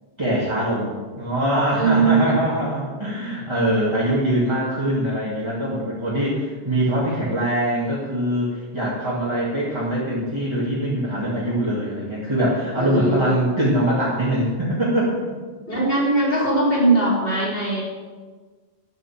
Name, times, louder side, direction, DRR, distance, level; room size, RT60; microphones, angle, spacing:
voice 1, 0.2-0.9 1.2-15.2, equal, 25° right, -8 dB, 2.1 m, -23 dB
voice 2, 1.8-2.4 12.7-13.4 15.7-17.8, right 3 dB, 60° left, -5 dB, 4.1 m, -20 dB
10.5 x 7.2 x 7.1 m, 1.4 s
omnidirectional pair, 1.1 m